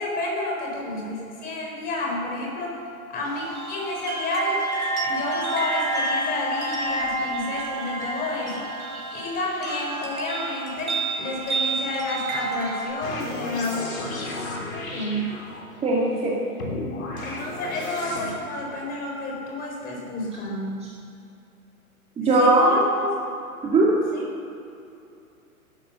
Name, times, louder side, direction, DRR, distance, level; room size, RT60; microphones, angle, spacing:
voice 1, 0.0-2.8 3.1-4.6 5.0-8.7 9.1-14.0 14.7-15.4 17.2-20.9 22.4-23.1 24.1-24.3, left 2 dB, 20° left, -1 dB, 3.9 m, -30 dB
sound 1, 3.2-12.8, right 2 dB, 75° right, 3.4 m, -29 dB
sound 2, 13.0-15.9 16.6-18.3, left 2 dB, 65° left, 3.2 m, -33 dB
voice 2, 15.8-16.4 22.2-22.7 23.6-23.9, right 2 dB, 15° right, -4 dB, 2.2 m, -19 dB
13.0 x 12.0 x 7.0 m, 2.6 s
figure-of-eight pair, 120°, 43 cm